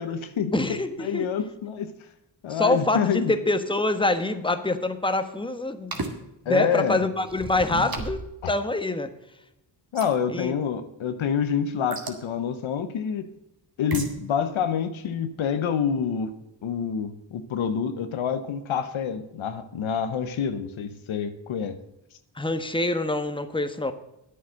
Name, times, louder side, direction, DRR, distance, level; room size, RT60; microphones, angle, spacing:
voice 1, 0.0-0.5 1.0-1.9 2.4-3.4 5.9-6.0 6.4-7.0 7.7-8.0 8.4-8.5 9.9-13.3 13.8-16.3 16.6-21.8, left 7 dB, 90° left, 9 dB, 1.1 m, -27 dB
voice 2, 0.5-1.2 2.5-6.0 6.5-8.2 8.5-9.1 10.3-10.5 22.3-23.9, left 2 dB, 10° left, 9 dB, 1.3 m, -25 dB
sound 1, 5.9-6.2 7.9-8.3 9.9-10.2 11.9-12.2 13.9-14.2, right 3 dB, 50° right, 2.3 m, -31 dB
sound 2, 7.2-8.1, right 2 dB, 10° right, 0.7 m, -39 dB
10.5 x 8.3 x 6.4 m, 0.88 s
cardioid pair, 55°, 46 cm